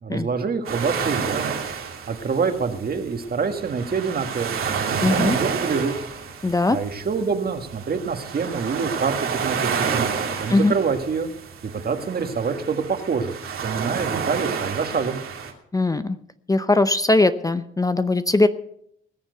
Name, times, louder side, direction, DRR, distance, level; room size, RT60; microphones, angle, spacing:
voice 1, 0.0-1.4 2.1-5.9 6.7-10.1 10.4-11.3 11.6-15.2, right 5 dB, 45° right, 7 dB, 1.7 m, -26 dB
sound 1, 0.6-15.5, right 6 dB, 80° right, 2.6 m, -29 dB
voice 2, 5.0-5.4 6.4-6.8 10.5-10.7 15.7-16.2 16.5-18.5, left 2 dB, 15° left, 11 dB, 0.6 m, -20 dB
20.0 x 7.3 x 6.7 m, 0.72 s
cardioid pair, 105°, 21 cm